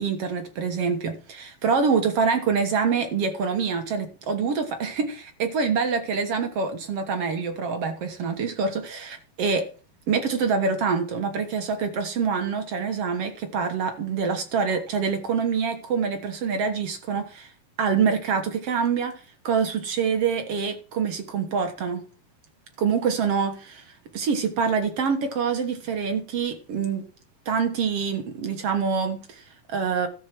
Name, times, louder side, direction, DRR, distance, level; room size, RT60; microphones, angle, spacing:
voice 1, 0.0-9.7 10.1-17.5 17.8-22.0 22.8-27.0 27.4-30.1, right 5 dB, 60° right, 6 dB, 1.6 m, -26 dB
13.5 x 8.3 x 6.0 m, 0.36 s
omnidirectional pair, 4.5 m